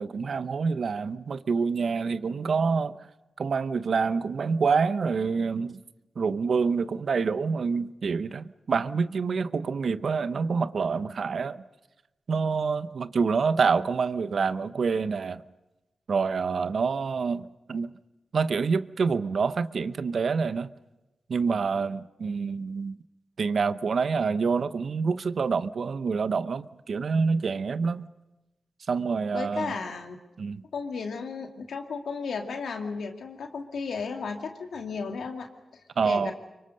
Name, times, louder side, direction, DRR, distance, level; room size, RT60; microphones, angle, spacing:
voice 1, 0.0-3.0 3.4-5.8 6.2-11.6 12.3-15.4 16.1-17.9 18.3-20.7 21.3-23.0 23.4-28.1 28.9-29.8 30.4-30.6 36.0-36.3, right 5 dB, 70° right, 0.7 m, -27 dB
voice 2, 29.3-30.2 30.7-35.5 36.0-36.3, left 5 dB, 85° left, 2.3 m, -34 dB
25.0 x 23.5 x 6.5 m
cardioid pair, 55°, 0 cm